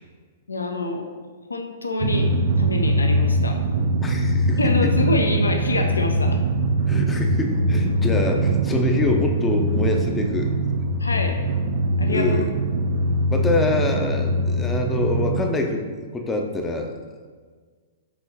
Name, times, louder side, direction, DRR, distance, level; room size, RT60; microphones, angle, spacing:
voice 1, 0.5-1.1 1.5-2.3 2.6-3.6 4.6-6.4 11.0-11.4 12.0-12.5, left 2 dB, 80° left, 4 dB, 0.4 m, -26 dB
Drum, 2.0-15.4, right 1 dB, 50° right, 0.3 m, -22 dB
voice 2, 4.0-4.9 6.9-10.5 12.1-12.5 13.0-16.9, left 2 dB, 15° left, 3 dB, 0.5 m, -25 dB
5.6 x 2.8 x 2.7 m, 1.5 s
figure-of-eight pair, 110°, 0 cm